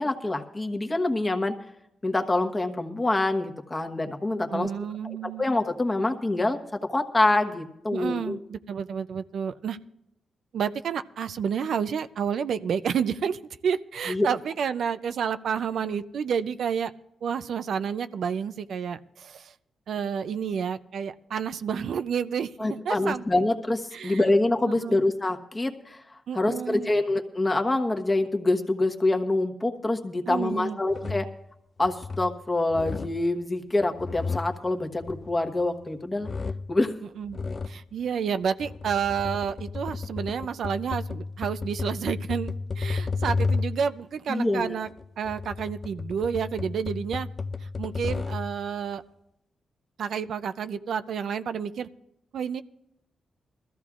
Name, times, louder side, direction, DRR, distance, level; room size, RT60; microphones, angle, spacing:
voice 1, 0.0-1.5 2.0-4.7 5.0-6.6 6.9-8.4 14.1-14.3 22.6-31.3 31.8-36.3 36.7-36.9 44.3-44.8, left 2 dB, 25° left, 5 dB, 1.2 m, -26 dB
voice 2, 4.5-5.4 7.9-9.8 10.5-16.9 17.2-19.5 19.9-23.2 23.9-24.2 24.7-25.1 26.3-27.0 30.3-31.2 37.2-37.4 37.7-44.9 45.2-47.3 47.6-49.0 50.0-51.9 52.3-52.6, right 7 dB, 75° right, 11 dB, 0.4 m, -30 dB
sound 1, 30.9-31.4 31.8-32.4 32.7-33.3 33.8-35.8 36.2-36.8 37.3-37.8 38.5-43.9 44.9-48.6, left 4 dB, 40° left, 0.4 m, -32 dB
21.0 x 14.0 x 2.4 m, 0.81 s
cardioid pair, 75°, 0 cm